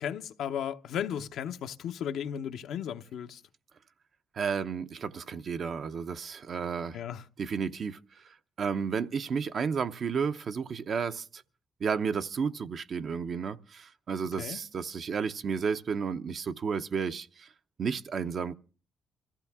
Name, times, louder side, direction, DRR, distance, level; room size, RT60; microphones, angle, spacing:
voice 1, 0.0-3.4 6.9-7.2 14.4-14.6, left 9 dB, 75° left, 0.9 m, -35 dB
voice 2, 4.4-7.0 7.4-8.0 8.6-11.2 11.8-17.5 17.8-18.5, right 6 dB, 55° right, 0.7 m, -32 dB
24.5 x 15.0 x 3.6 m
cardioid pair, 90°, 0 cm